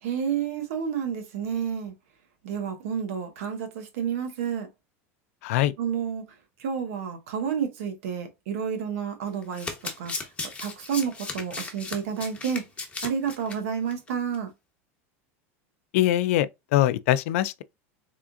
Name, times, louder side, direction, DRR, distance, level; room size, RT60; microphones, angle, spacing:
voice 1, 0.0-1.9 2.4-4.7 5.8-10.3 10.6-12.7 13.0-14.5, right 7 dB, 80° right, 1.2 m, -30 dB
voice 2, 5.4-5.7 15.9-17.6, left 13 dB, 75° left, 0.4 m, -23 dB
Domestic sounds home sounds, 9.4-13.6 13.9-14.1 14.3-14.4, left 4 dB, 15° left, 1.0 m, -35 dB
3.6 x 3.4 x 2.5 m
supercardioid pair, 120°, 7 cm